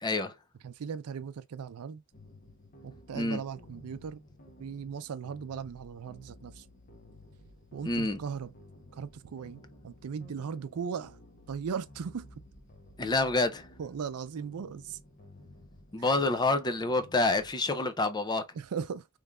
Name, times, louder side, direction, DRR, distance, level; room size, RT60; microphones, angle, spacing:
voice 1, 0.0-0.3 3.1-3.4 7.9-8.2 13.0-13.7 15.9-18.4, left 2 dB, 20° left, 0.5 m, -27 dB
voice 2, 0.6-2.0 2.8-4.2 4.6-6.7 7.7-8.5 8.9-11.2 11.5-12.4 13.8-15.0 16.0-16.1 18.5-19.1, right 6 dB, 85° right, 0.4 m, -38 dB
sound 1, 2.1-17.6, left 1 dB, 40° left, 0.8 m, -54 dB
3.6 x 3.2 x 2.2 m
head